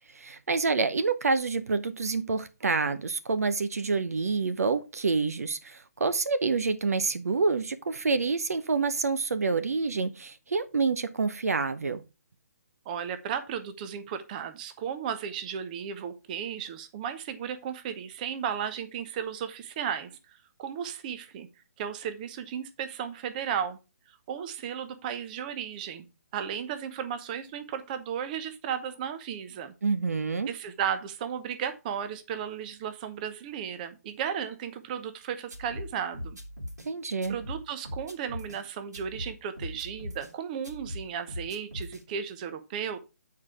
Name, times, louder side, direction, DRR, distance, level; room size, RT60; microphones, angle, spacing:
voice 1, 0.1-12.0 29.8-30.5 36.8-37.4, right 4 dB, 65° right, 0.8 m, -27 dB
voice 2, 12.8-21.5 21.8-23.8 24.1-26.1 26.3-29.7 30.5-36.4 37.3-43.0, right 8 dB, 30° right, 0.9 m, -35 dB
sound 1, 35.5-36.9 37.2-38.6 38.9-40.3 40.6-42.0, left 1 dB, 85° right, 2.9 m, -40 dB
8.6 x 4.8 x 4.7 m
figure-of-eight pair, 140°, 9 cm